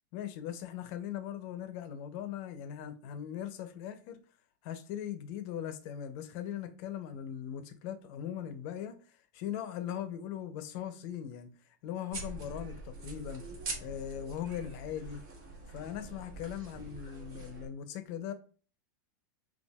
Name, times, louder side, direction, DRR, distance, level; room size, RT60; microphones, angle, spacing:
voice 1, 0.1-4.2 4.6-9.0 9.3-11.5 11.8-13.4 13.8-15.2 15.7-18.3, left 10 dB, 45° left, 0.7 m, -39 dB
sound 1, 12.1-17.7, right 2 dB, 45° right, 1.6 m, -44 dB
5.6 x 2.5 x 2.3 m
supercardioid pair, 145°, 10 cm